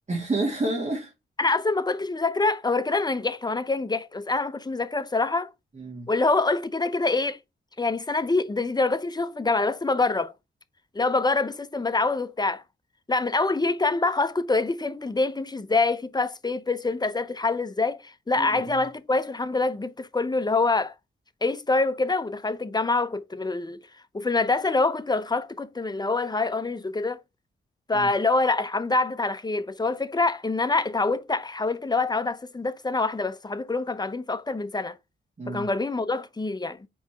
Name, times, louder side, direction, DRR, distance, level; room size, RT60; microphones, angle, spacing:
voice 1, 0.1-1.1 5.7-6.1 18.4-18.7 27.9-28.1 35.4-35.7, right 2 dB, 35° right, 2.4 m, -29 dB
voice 2, 1.4-5.5 6.1-7.4 7.8-10.3 10.9-12.6 13.1-20.9 21.4-23.8 24.1-27.2 27.9-35.0 35.5-36.8, left 3 dB, 20° left, 0.6 m, -25 dB
4.7 x 4.1 x 4.9 m
cardioid pair, 90°, 21 cm